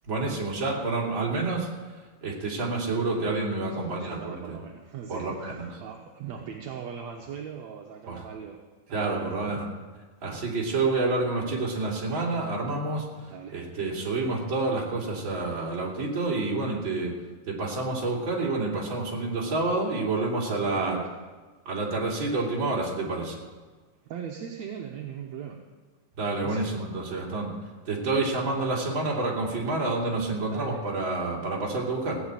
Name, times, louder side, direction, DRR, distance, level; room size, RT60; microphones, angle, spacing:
voice 1, 0.1-1.7 2.2-4.6 5.1-5.8 8.1-8.2 8.9-9.6 10.2-17.1 17.5-21.0 21.7-23.4 26.2-27.5 27.9-32.2, right 3 dB, 40° right, -3 dB, 3.5 m, -28 dB
voice 2, 3.7-8.6 8.9-9.3 9.5-9.6 13.2-13.6 20.8-21.1 24.1-25.6 26.3-26.7 30.4-30.8, right 8 dB, 70° right, 1 dB, 2.2 m, -39 dB
17.0 x 7.3 x 8.9 m, 1.3 s
omnidirectional pair, 3.4 m